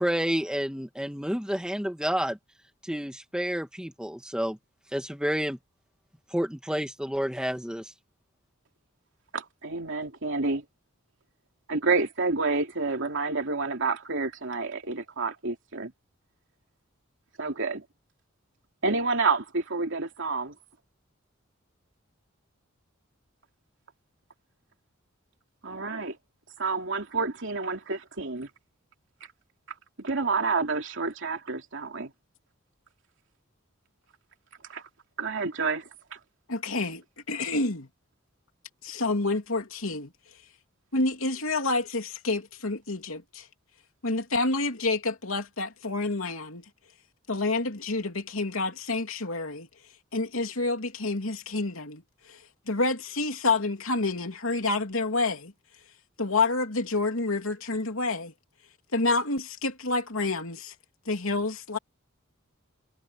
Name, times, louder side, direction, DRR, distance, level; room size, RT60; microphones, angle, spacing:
voice 1, 0.0-2.4 2.8-4.6 4.9-5.6 6.3-7.9, equal, 5° right, 1.9 m, -29 dB
voice 2, 9.3-10.6 11.7-15.9 17.4-17.8 18.8-20.5 25.6-26.2 26.6-28.5 30.0-32.1 34.7-34.8 35.2-36.2, right 4 dB, 65° right, 3.0 m, -29 dB
voice 3, 36.5-37.9 38.8-40.1 40.9-43.5 44.0-46.6 47.3-49.7 50.1-52.0 52.3-52.4 52.7-55.5 56.2-58.3 58.9-60.7 61.0-61.8, left 3 dB, 80° left, 3.1 m, -28 dB
head